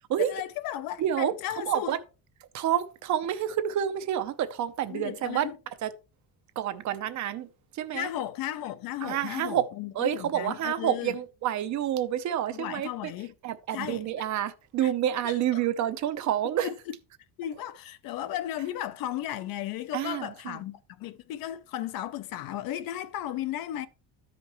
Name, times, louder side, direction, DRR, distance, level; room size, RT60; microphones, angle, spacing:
voice 1, 0.2-2.0 4.9-5.6 7.9-11.2 12.5-13.3 13.7-14.3 14.8-14.9 15.2-15.6 16.6-16.7 17.4-23.9, left 12 dB, 60° left, 0.6 m, -35 dB
voice 2, 1.0-2.0 2.5-5.5 5.8-5.9 6.6-7.5 7.7-8.1 9.0-9.7 9.9-13.1 13.4-16.7 19.9-20.6, right 11 dB, 45° right, 0.7 m, -29 dB
13.0 x 5.1 x 3.0 m
cardioid pair, 150°, 39 cm